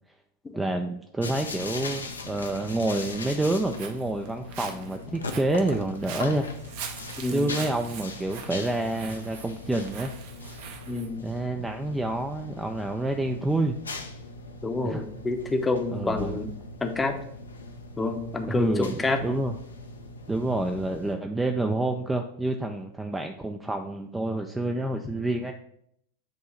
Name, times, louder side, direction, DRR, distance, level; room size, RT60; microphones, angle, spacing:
voice 1, 0.6-6.5 7.3-10.1 11.2-13.8 14.8-15.0 15.9-16.4 18.5-19.6 20.3-25.5, right 2 dB, 10° right, 4 dB, 0.4 m, -28 dB
sound 1, 1.2-21.1, left 3 dB, 75° left, 0.6 m, -40 dB
Walk footsteps, 3.4-11.1, right 7 dB, 50° right, 0.7 m, -43 dB
voice 2, 7.2-7.6 10.9-11.3 14.6-16.5 16.8-17.2 18.0-19.2, left 3 dB, 15° left, 5 dB, 0.7 m, -28 dB
7.9 x 2.7 x 4.3 m, 0.71 s
figure-of-eight pair, 90°, 0 cm